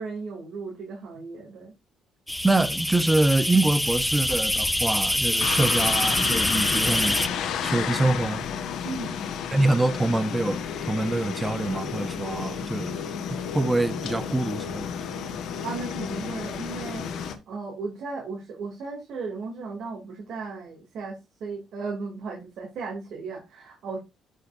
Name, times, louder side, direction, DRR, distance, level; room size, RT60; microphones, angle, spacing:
voice 1, 0.0-1.7 8.8-9.2 15.6-24.0, right 4 dB, 70° right, 2.9 m, -35 dB
sound 1, 2.3-7.3, left 1 dB, 5° left, 0.4 m, -25 dB
voice 2, 2.4-7.2 7.6-8.5 9.5-13.0 13.3-14.9, right 2 dB, 15° right, 0.7 m, -25 dB
sound 2, 5.4-17.3, left 7 dB, 75° left, 1.4 m, -32 dB
10.0 x 6.5 x 2.7 m
cardioid pair, 110°, 0 cm